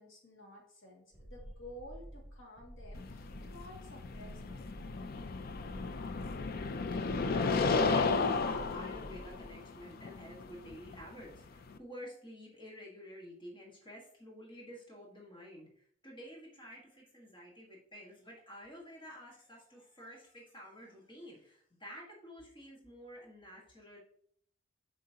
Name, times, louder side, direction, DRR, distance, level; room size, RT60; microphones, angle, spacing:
voice 1, 0.0-4.7, left 1 dB, 75° left, -1 dB, 2.1 m, -52 dB
sound 1, 1.1-9.6, equal, 10° right, 2.7 m, -50 dB
sound 2, 2.9-11.8, left 4 dB, 50° left, 0.4 m, -34 dB
voice 2, 6.9-24.0, equal, 25° left, -3 dB, 1.6 m, -50 dB
7.6 x 5.1 x 2.8 m, 0.65 s
head